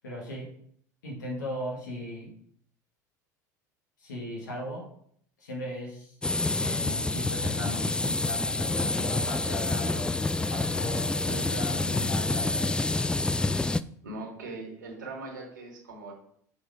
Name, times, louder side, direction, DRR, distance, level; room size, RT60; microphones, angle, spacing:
voice 1, 0.0-0.5 1.0-2.3 4.0-4.9 5.4-6.1 6.6-10.2 10.5-12.7, left 1 dB, 80° left, -3 dB, 2.0 m, -37 dB
sound 1, 6.2-13.8, left 2 dB, 10° left, 0.3 m, -28 dB
voice 2, 14.0-16.1, right 2 dB, 85° right, -1 dB, 2.4 m, -40 dB
7.1 x 4.8 x 5.0 m, 0.64 s
hypercardioid pair, 75°, 10 cm